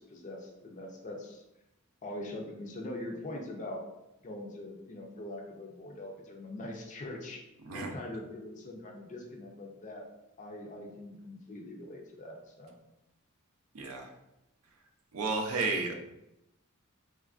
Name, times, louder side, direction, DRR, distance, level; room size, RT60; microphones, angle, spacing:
voice 1, 0.0-1.4 2.0-3.8 4.2-7.4 7.7-10.0 10.4-12.7, left 1 dB, 35° left, 1 dB, 0.5 m, -42 dB
voice 2, 13.7-14.1 15.1-15.9, right 3 dB, 75° right, 3 dB, 0.5 m, -32 dB
3.2 x 2.4 x 2.3 m, 0.88 s
head